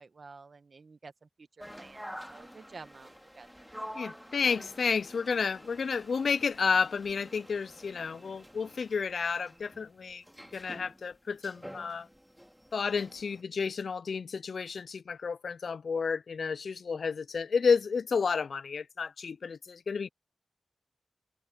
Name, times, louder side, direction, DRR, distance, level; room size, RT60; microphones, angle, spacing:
voice 1, 0.0-1.5 1.8-3.5, right 4 dB, 60° right, 1.5 m, -51 dB
sound 1, 1.6-13.4, equal, ahead, 2.1 m, -48 dB
voice 2, 3.9-10.2 10.5-12.1 12.7-20.1, left 5 dB, 80° left, 0.3 m, -31 dB
wide cardioid pair, 95°, 0 cm